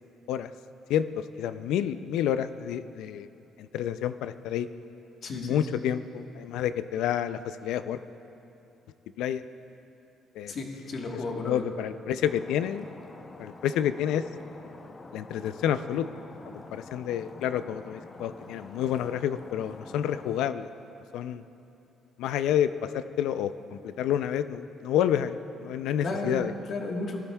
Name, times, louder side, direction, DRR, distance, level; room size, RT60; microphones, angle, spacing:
voice 1, 0.9-3.3 3.6-4.7 5.3-8.0 9.2-9.4 10.4-10.5 11.4-12.9 13.4-14.2 15.1-16.1 16.4-20.7 21.1-21.4 22.2-26.5, left 10 dB, 85° left, 12 dB, 0.4 m, -29 dB
voice 2, 5.2-5.7 10.5-11.6 26.0-27.3, left 2 dB, 50° left, 1 dB, 1.3 m, -33 dB
Stream, 12.2-20.5, left 3 dB, 25° left, 0.7 m, -46 dB
19.0 x 12.0 x 2.3 m, 2.8 s
cardioid pair, 125°, 0 cm